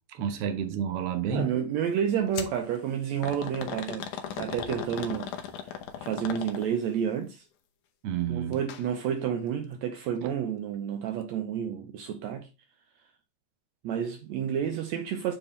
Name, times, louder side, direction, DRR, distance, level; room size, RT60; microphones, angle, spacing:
voice 1, 0.1-1.5 8.0-8.6 10.2-10.3, right 7 dB, 60° right, 1.8 m, -30 dB
voice 2, 1.3-4.1 4.4-5.3 5.6-7.5 8.3-12.5 13.8-15.3, right 8 dB, 75° right, 1.9 m, -30 dB
sound 1, 2.4-2.6 3.2-6.9 8.5-8.8 9.2-9.3 10.1-10.2, left 9 dB, 85° left, 2.5 m, -37 dB
8.6 x 4.8 x 3.2 m
omnidirectional pair, 3.5 m